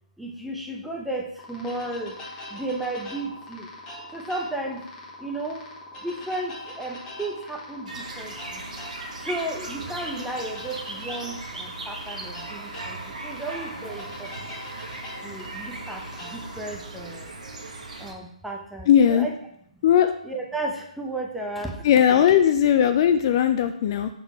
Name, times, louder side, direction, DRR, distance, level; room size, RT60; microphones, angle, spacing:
voice 1, 0.2-2.2 2.5-3.7 4.1-4.8 5.2-5.7 6.0-8.6 9.2-14.5 15.2-17.3 18.0-19.3 20.2-21.8 22.1-22.3, right 2 dB, ahead, 1 dB, 0.6 m, -34 dB
sound 1, 1.4-16.6, left 1 dB, 20° left, 1.3 m, -42 dB
sound 2, 7.9-18.1, right 2 dB, 75° right, 1.3 m, -38 dB
voice 2, 18.9-19.3 19.8-20.1 21.8-24.1, left 9 dB, 35° left, 10 dB, 0.3 m, -18 dB
5.3 x 4.2 x 4.5 m, 0.73 s
hypercardioid pair, 145°, 4 cm